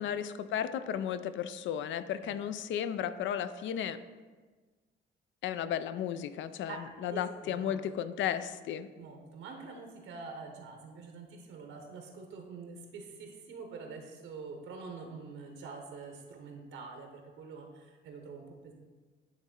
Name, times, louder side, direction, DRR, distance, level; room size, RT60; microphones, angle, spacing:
voice 1, 0.0-4.0 5.4-8.9, left 9 dB, 70° left, 13 dB, 0.4 m, -34 dB
voice 2, 6.7-7.8 9.0-18.7, right 4 dB, 85° right, 3 dB, 0.9 m, -46 dB
9.4 x 3.1 x 3.7 m, 1.4 s
cardioid pair, 90°, 20 cm